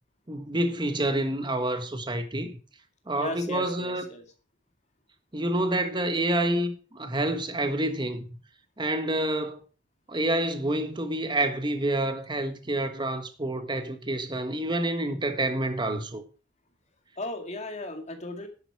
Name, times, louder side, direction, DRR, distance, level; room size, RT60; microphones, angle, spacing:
voice 1, 0.3-2.5 3.1-4.0 5.3-8.3 8.8-9.6 10.1-16.2, right 1 dB, 25° right, 1.4 m, -28 dB
voice 2, 3.1-4.2 17.2-18.5, left 2 dB, 35° left, 2.1 m, -36 dB
10.5 x 9.2 x 4.8 m
head